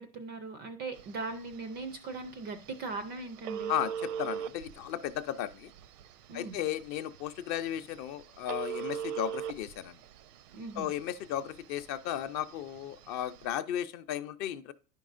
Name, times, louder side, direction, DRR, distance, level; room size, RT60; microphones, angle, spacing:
voice 1, 0.0-3.7 6.3-6.6 10.5-10.9, right 3 dB, 25° right, 0.3 m, -39 dB
Telephone, 1.0-13.5, right 8 dB, 75° right, 0.7 m, -42 dB
voice 2, 4.2-5.7 6.3-9.9 10.8-14.7, left 11 dB, 40° left, 0.5 m, -35 dB
10.0 x 5.3 x 2.5 m
hypercardioid pair, 110°, 47 cm